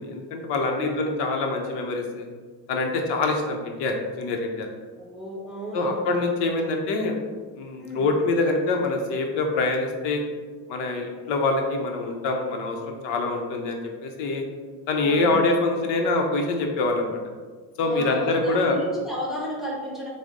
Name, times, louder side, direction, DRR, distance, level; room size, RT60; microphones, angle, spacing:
voice 1, 0.0-2.3 2.7-4.7 5.7-7.2 7.6-10.2 10.7-14.4 14.9-17.2 17.8-18.8, left 3 dB, 70° left, 3 dB, 0.7 m, -25 dB
voice 2, 0.7-1.1 5.0-6.1 7.8-8.1 15.0-15.4 17.8-20.1, equal, ahead, -5 dB, 0.9 m, -33 dB
4.9 x 2.0 x 3.7 m, 1.5 s
cardioid pair, 125°, 43 cm